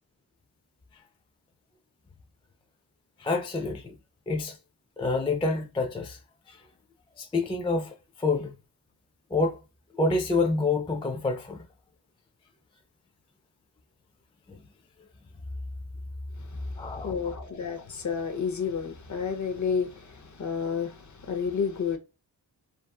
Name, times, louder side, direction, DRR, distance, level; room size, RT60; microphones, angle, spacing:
voice 1, 3.2-3.9 4.3-4.6 5.0-6.2 6.5-6.6 7.2-8.5 9.3-9.6 9.9-11.6 14.5-14.6 16.8-17.1, left 3 dB, 10° left, 0.4 m, -27 dB
voice 2, 16.4-22.0, left 6 dB, 40° left, 0.7 m, -31 dB
2.6 x 2.3 x 2.3 m
cardioid pair, 45°, 46 cm